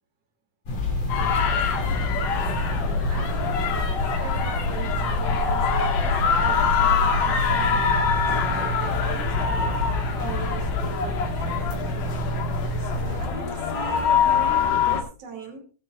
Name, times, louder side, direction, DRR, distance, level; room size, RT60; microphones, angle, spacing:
sound 1, 0.7-13.3, left 2 dB, 45° left, 3.7 m, -27 dB
sound 2, 0.7-15.0, right 1 dB, 30° left, 3.4 m, -40 dB
voice 1, 1.0-1.5 1.8-2.4 2.6-3.6 3.8-12.1 12.8-15.6, right 4 dB, 45° right, 2 dB, 3.5 m, -41 dB
sound 3, 1.1-15.0, left 7 dB, 65° left, 3.1 m, -25 dB
19.5 x 9.9 x 2.5 m, 0.36 s
omnidirectional pair, 4.3 m